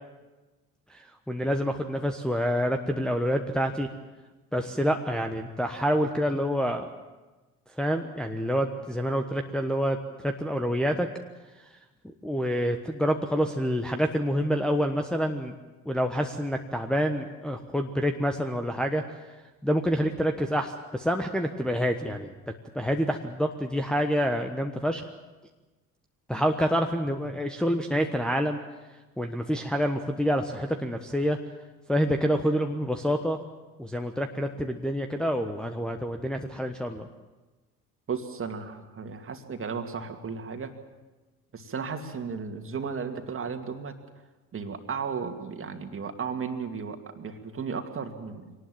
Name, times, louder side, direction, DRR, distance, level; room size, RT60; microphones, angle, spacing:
voice 1, 0.9-3.9 4.5-6.9 7.8-11.1 11.6-11.7 12.2-15.5 15.8-19.0 19.6-22.3 22.7-25.1 26.3-28.6 29.2-31.4 31.9-33.4 33.8-37.1, equal, ahead, 3 dB, 1.2 m, -27 dB
voice 2, 38.1-40.7 41.5-43.9 44.5-48.6, right 5 dB, 30° right, 6 dB, 2.4 m, -34 dB
24.5 x 19.0 x 7.6 m, 1.2 s
figure-of-eight pair, 60°, 45 cm